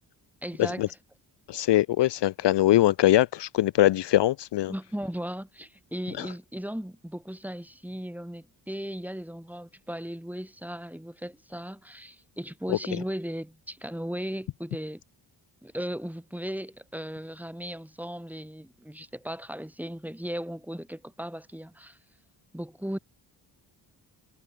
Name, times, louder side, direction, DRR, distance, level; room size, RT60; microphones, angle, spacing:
voice 1, 0.4-0.9 4.7-15.0 15.6-22.0 22.5-23.0, equal, 5° right, 5.9 m, -36 dB
voice 2, 1.5-4.7 6.2-6.3 12.7-12.8, left 14 dB, 65° left, 0.6 m, -22 dB
cardioid pair, 80°, 46 cm